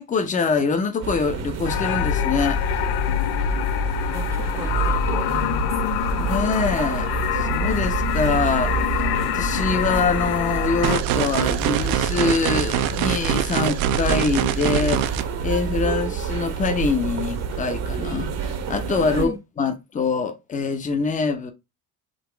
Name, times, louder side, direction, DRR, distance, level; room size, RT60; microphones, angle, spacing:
voice 1, 0.0-2.6 6.2-21.5, left 4 dB, 20° left, 0.7 m, -24 dB
sound 1, 1.0-19.2, right 6 dB, 45° right, 0.9 m, -27 dB
sound 2, 1.6-11.0, left 16 dB, 80° left, 0.5 m, -25 dB
voice 2, 4.1-6.0 19.1-19.4, right 3 dB, 10° right, 0.3 m, -35 dB
sound 3, 10.8-15.2, right 11 dB, 75° right, 0.6 m, -24 dB
4.0 x 2.9 x 4.4 m
cardioid pair, 155°, 37 cm